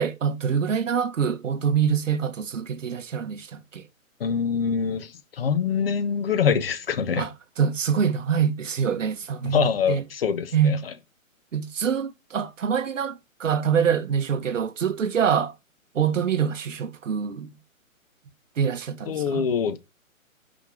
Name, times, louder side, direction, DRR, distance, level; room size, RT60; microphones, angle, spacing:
voice 1, 0.0-3.8 7.2-10.0 10.5-10.8 11.5-15.5 15.9-17.5 18.6-19.4, right 7 dB, 65° right, 1.3 m, -25 dB
voice 2, 4.2-7.3 9.4-10.9 19.1-19.8, left 7 dB, 45° left, 1.2 m, -25 dB
6.3 x 5.2 x 5.1 m
hypercardioid pair, 165°, 42 cm